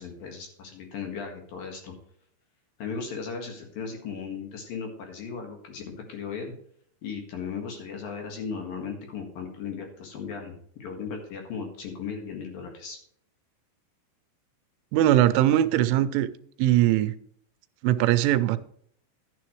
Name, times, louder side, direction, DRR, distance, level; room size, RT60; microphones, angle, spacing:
voice 1, 0.0-1.9 2.8-6.5 7.0-13.0, left 6 dB, 60° left, 3 dB, 3.0 m, -36 dB
voice 2, 14.9-16.3 16.6-17.1 17.8-18.6, right 13 dB, 85° right, 13 dB, 3.1 m, -21 dB
12.0 x 9.6 x 3.1 m, 0.64 s
omnidirectional pair, 5.5 m